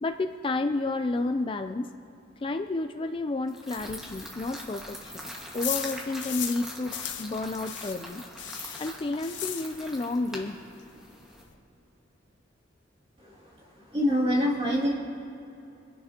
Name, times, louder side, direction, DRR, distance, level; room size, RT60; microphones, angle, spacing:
voice 1, 0.0-1.9 2.4-8.2 8.8-10.6, left 2 dB, 25° left, 7 dB, 0.4 m, -31 dB
sound 1, 3.5-11.4, equal, 5° right, 1.6 m, -43 dB
sound 2, 3.8-6.6 6.9-10.1 10.4-10.5 10.8-10.9 11.1-11.5, left 10 dB, 70° left, 1.1 m, -37 dB
voice 2, 13.2-14.9, equal, 30° right, -4 dB, 2.6 m, -26 dB
25.5 x 11.0 x 2.9 m, 2.8 s
head